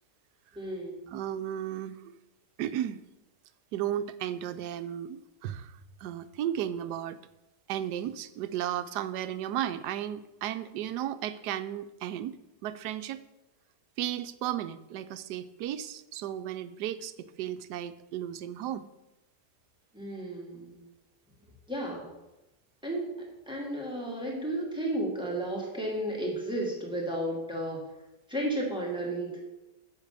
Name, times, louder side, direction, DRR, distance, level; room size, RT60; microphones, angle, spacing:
voice 1, 0.6-1.0 19.9-20.7 21.7-22.1 22.8-27.8 28.3-29.5, right 1 dB, 5° right, -3 dB, 2.5 m, -33 dB
voice 2, 1.1-2.2 2.6-3.0 3.7-7.2 7.7-13.2 14.0-18.9, right 11 dB, 80° right, 11 dB, 1.2 m, -34 dB
8.1 x 6.5 x 6.7 m, 0.97 s
omnidirectional pair, 1.8 m